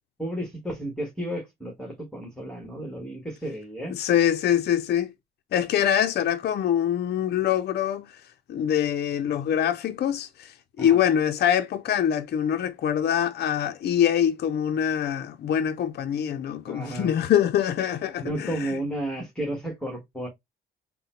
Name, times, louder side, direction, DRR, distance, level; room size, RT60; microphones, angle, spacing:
voice 1, 0.2-4.0 10.8-11.0 16.7-17.1 18.2-20.3, right 1 dB, 5° left, 1.4 m, -32 dB
voice 2, 3.9-5.1 5.5-8.2 8.5-18.8, left 9 dB, 55° left, 0.5 m, -24 dB
3.7 x 2.2 x 4.3 m
cardioid pair, 90°, 20 cm